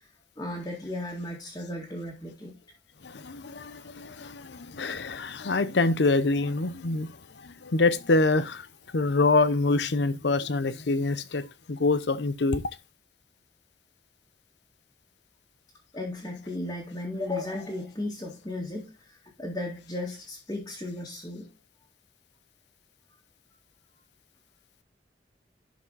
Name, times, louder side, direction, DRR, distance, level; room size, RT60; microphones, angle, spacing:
voice 1, 0.4-2.5 15.9-21.4, left 1 dB, 20° left, 2.0 m, -35 dB
voice 2, 3.0-7.1 7.4-8.7 8.9-12.6, left 3 dB, 75° left, 0.7 m, -25 dB
11.5 x 4.9 x 4.0 m
head